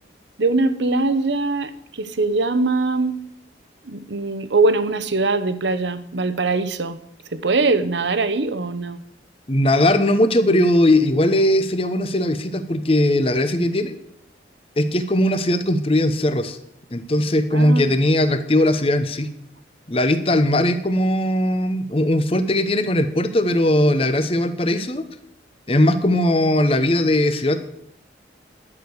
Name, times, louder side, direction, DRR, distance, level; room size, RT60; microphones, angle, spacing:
voice 1, 0.4-3.2 3.8-7.0 7.3-9.0 17.5-17.9, right 3 dB, 80° right, 12 dB, 0.9 m, -22 dB
voice 2, 9.5-14.0 14.8-16.6 16.9-19.3 19.9-25.0 25.7-27.6, left 1 dB, 30° left, 10 dB, 0.8 m, -19 dB
11.0 x 6.6 x 8.0 m, 0.71 s
head